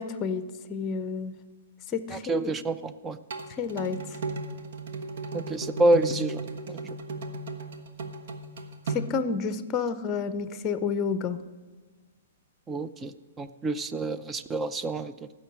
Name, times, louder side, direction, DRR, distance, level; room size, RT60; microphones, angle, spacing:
voice 1, 0.0-1.4 1.9-2.5 3.5-4.2 8.9-11.4, left 5 dB, 25° left, 12 dB, 0.7 m, -30 dB
voice 2, 2.1-3.2 5.3-6.4 6.7-7.0 12.7-15.1, right 2 dB, 15° right, 12 dB, 0.5 m, -28 dB
sound 1, 3.3-9.0, right 3 dB, 65° right, 1.2 m, -36 dB
14.5 x 6.2 x 7.4 m, 1.3 s
hypercardioid pair, 120°, 0 cm